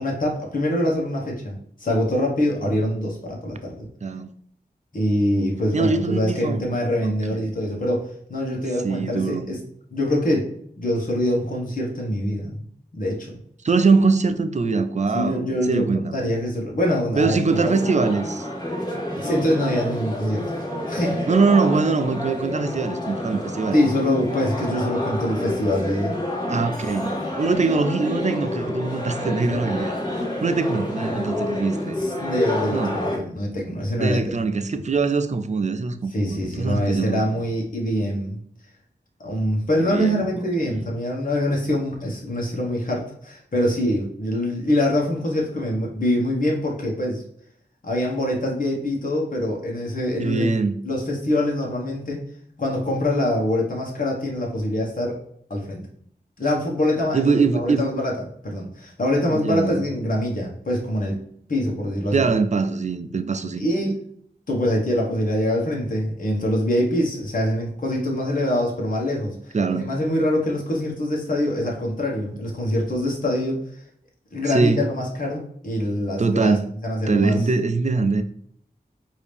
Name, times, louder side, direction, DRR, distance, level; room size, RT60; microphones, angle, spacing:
voice 1, 0.0-3.9 4.9-9.6 9.9-10.5 10.8-12.6 12.9-13.3 15.1-17.8 19.2-20.4 20.9-21.3 23.7-26.1 31.9-34.2 36.1-38.4 39.2-47.2 47.8-50.5 50.8-52.2 52.6-55.2 55.5-55.8 56.4-58.1 58.4-61.2 61.5-62.3 63.6-64.0 64.5-73.6 74.3-76.6 76.8-77.4, left 1 dB, 55° left, 1.2 m, -24 dB
voice 2, 5.7-6.8 7.0-7.6 8.8-9.5 13.6-16.2 17.2-18.5 21.3-23.8 26.5-32.0 32.7-33.0 34.0-37.5 39.8-40.9 50.2-50.8 57.1-57.9 59.3-59.9 62.1-63.7 69.5-69.9 74.5-74.8 76.2-76.7 77.1-78.2, right 4 dB, 45° right, 0.5 m, -23 dB
sound 1, 17.5-33.2, left 1 dB, 25° left, 1.4 m, -29 dB
4.9 x 2.8 x 3.4 m
wide cardioid pair, 55°, 17 cm